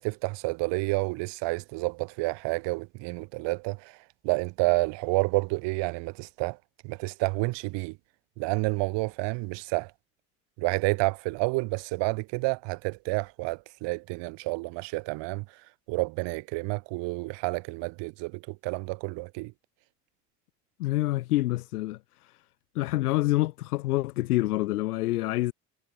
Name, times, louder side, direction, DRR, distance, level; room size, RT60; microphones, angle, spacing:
voice 1, 0.0-4.0 4.2-6.6 6.8-8.0 8.4-9.9 10.6-15.4 15.9-19.5, right 25 dB, 70° right, 3.3 m, -29 dB
voice 2, 20.8-22.0 22.7-25.5, left 17 dB, 85° left, 0.9 m, -26 dB
hypercardioid pair, 60°, 44 cm